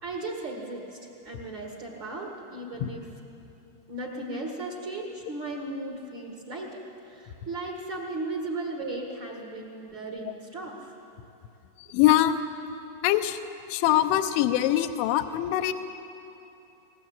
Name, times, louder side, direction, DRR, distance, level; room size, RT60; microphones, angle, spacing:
voice 1, 0.0-3.1 3.9-10.9, right 2 dB, 85° right, -1 dB, 1.0 m, -36 dB
voice 2, 11.8-12.4 13.0-13.4 13.7-15.7, left 13 dB, 80° left, 8 dB, 3.0 m, -23 dB
19.5 x 19.5 x 8.9 m, 2.8 s
omnidirectional pair, 5.7 m